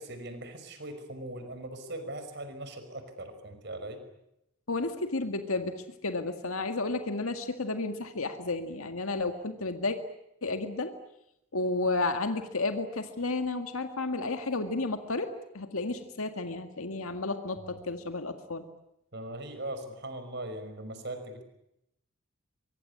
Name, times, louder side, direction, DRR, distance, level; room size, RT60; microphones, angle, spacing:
voice 1, 0.0-4.0 17.6-17.8 19.1-21.4, right 1 dB, 50° right, 9 dB, 5.6 m, -40 dB
voice 2, 4.7-10.0 10.4-10.9 11.5-18.6, left 3 dB, 80° left, 7 dB, 1.9 m, -32 dB
24.5 x 23.5 x 9.8 m, 0.83 s
head